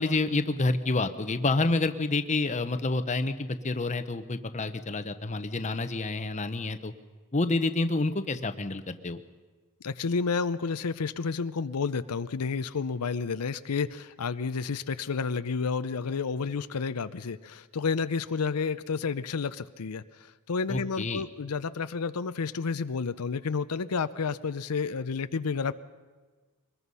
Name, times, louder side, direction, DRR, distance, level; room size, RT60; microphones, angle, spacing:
voice 1, 0.0-6.9 7.3-9.2 20.7-21.2, left 2 dB, 30° left, 10 dB, 0.9 m, -28 dB
voice 2, 9.8-25.7, left 5 dB, 90° left, 12 dB, 0.6 m, -30 dB
23.5 x 20.5 x 5.5 m, 1.4 s
head